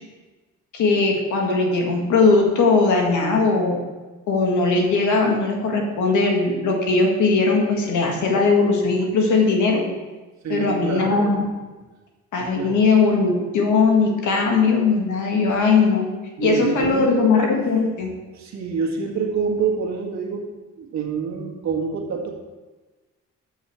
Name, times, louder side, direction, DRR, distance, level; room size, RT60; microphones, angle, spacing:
voice 1, 0.7-3.8 4.3-9.9 10.5-11.5 12.3-16.1 16.4-18.1, left 4 dB, 75° left, 1 dB, 1.8 m, -19 dB
voice 2, 10.4-11.3 12.4-12.8 16.4-17.3 18.3-20.5 20.8-22.3, right 5 dB, 65° right, 0 dB, 1.7 m, -27 dB
7.4 x 6.6 x 4.5 m, 1.2 s
cardioid pair, 90°, 30 cm